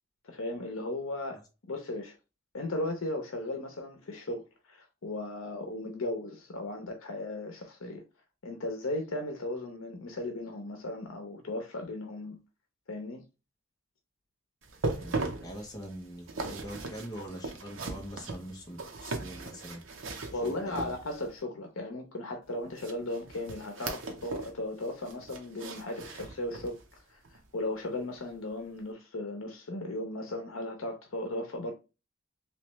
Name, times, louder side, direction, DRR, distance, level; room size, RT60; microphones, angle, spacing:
voice 1, 0.2-1.4 1.7-2.2 2.5-8.0 8.4-12.4 12.9-13.2 20.3-26.8 27.1-31.7, left 2 dB, 80° left, 0.7 m, -36 dB
sound 1, 14.6-21.4 22.7-24.6 24.8-26.8 27.2-27.4 27.9-28.0, right 3 dB, 70° right, 0.8 m, -38 dB
voice 2, 15.4-19.8 20.3-20.9, equal, 20° left, 0.8 m, -43 dB
3.2 x 3.1 x 3.1 m
head